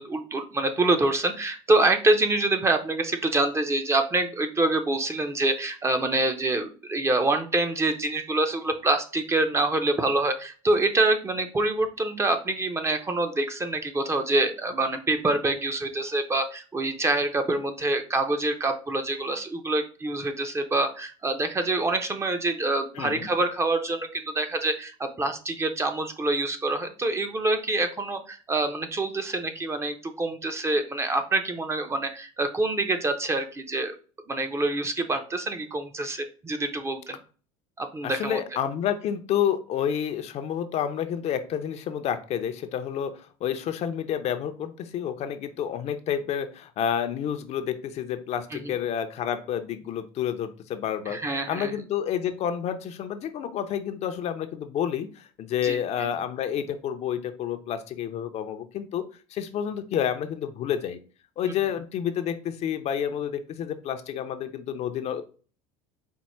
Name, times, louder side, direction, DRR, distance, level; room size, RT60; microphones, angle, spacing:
voice 1, 0.0-34.0 34.3-37.2 37.8-38.4 48.5-48.6 51.1-51.7 55.6-55.8 61.5-61.6, right 2 dB, 15° right, 7 dB, 0.5 m, -26 dB
voice 2, 23.0-23.3 38.0-51.2 51.5-61.0 61.4-65.2, left 9 dB, 45° left, 9 dB, 0.5 m, -29 dB
4.4 x 2.1 x 4.1 m, 0.37 s
supercardioid pair, 120°, 16 cm